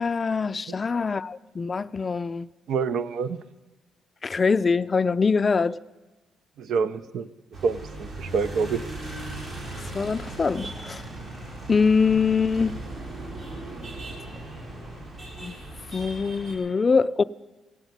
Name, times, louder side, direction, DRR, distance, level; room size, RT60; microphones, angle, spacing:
voice 1, 0.0-2.5 4.2-5.8 9.9-11.0 11.7-12.7 15.4-15.6 15.9-17.2, left 5 dB, 35° left, 0.4 m, -23 dB
voice 2, 2.7-3.4 6.6-7.3 7.6-8.8, right 5 dB, 70° right, 0.6 m, -27 dB
sound 1, 7.5-16.6, right 2 dB, 50° right, 4.2 m, -38 dB
16.0 x 8.1 x 9.2 m
cardioid pair, 90°, 0 cm